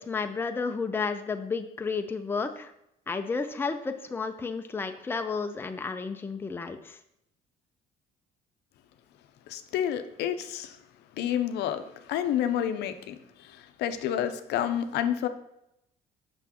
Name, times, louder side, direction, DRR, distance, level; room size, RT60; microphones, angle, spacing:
voice 1, 0.0-2.7 3.1-7.0, left 4 dB, 15° left, 7 dB, 0.4 m, -32 dB
voice 2, 9.5-10.8 11.2-15.3, left 10 dB, 80° left, 9 dB, 0.6 m, -29 dB
6.0 x 5.9 x 2.9 m, 0.81 s
cardioid pair, 110°, 17 cm